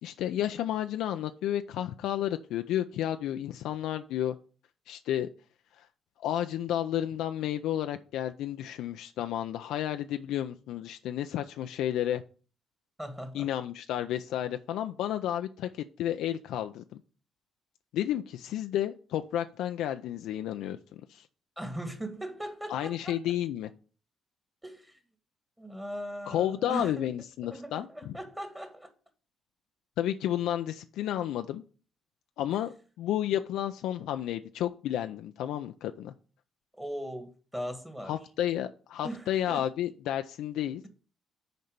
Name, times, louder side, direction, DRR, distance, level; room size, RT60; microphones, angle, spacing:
voice 1, 0.0-4.4 4.9-5.3 5.8-5.9 6.2-12.2 13.3-17.0 17.9-21.3 22.7-23.7 26.3-28.1 30.0-31.6 32.4-36.1 38.1-40.8, left 11 dB, 90° left, 0.4 m, -31 dB
voice 2, 13.0-13.5 21.6-23.3 24.6-25.0 25.6-27.1 27.4-28.9 36.7-38.1 39.0-39.7, equal, 10° right, 1.5 m, -39 dB
6.6 x 4.4 x 6.7 m
cardioid pair, 90°, 0 cm